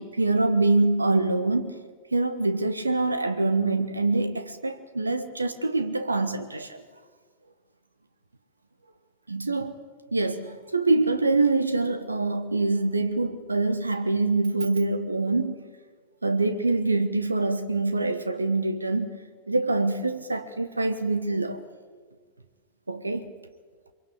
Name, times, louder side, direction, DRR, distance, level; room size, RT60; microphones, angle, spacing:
voice 1, 0.0-1.7 2.1-6.8 9.3-9.8 10.1-15.6 16.2-19.2 19.5-21.6 22.9-23.3, right 3 dB, 80° right, 1.2 m, -25 dB
24.0 x 23.0 x 8.5 m
figure-of-eight pair, 90°, 0 cm